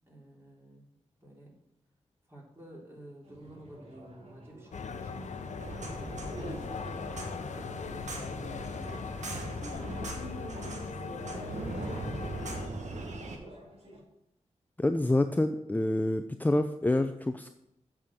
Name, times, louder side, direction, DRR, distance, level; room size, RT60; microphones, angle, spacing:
voice 1, 0.1-1.5 2.3-7.0 7.3-8.4 9.5-13.0, right 1 dB, 20° right, -3 dB, 3.7 m, -50 dB
sound 1, 3.2-14.0, right 2 dB, 55° right, 2.8 m, -49 dB
paris cafe ambient with bells short, 4.7-12.7, left 5 dB, 75° left, 0.7 m, -39 dB
sound 2, 5.6-13.4, right 2 dB, 75° right, 1.5 m, -41 dB
voice 2, 14.8-17.5, left 1 dB, 15° left, 8 dB, 0.5 m, -27 dB
8.2 x 5.0 x 7.4 m, 0.81 s
cardioid pair, 50°, 12 cm